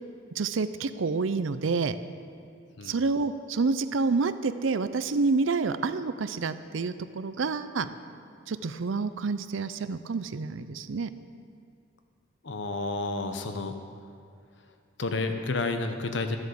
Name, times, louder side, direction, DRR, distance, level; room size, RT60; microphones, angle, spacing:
voice 1, 0.3-2.0 2.8-7.9 8.5-11.1, right 4 dB, 85° right, 12 dB, 0.5 m, -28 dB
voice 2, 12.4-13.7 15.0-16.4, left 3 dB, 70° left, 7 dB, 0.9 m, -30 dB
12.5 x 8.0 x 6.9 m, 2.3 s
head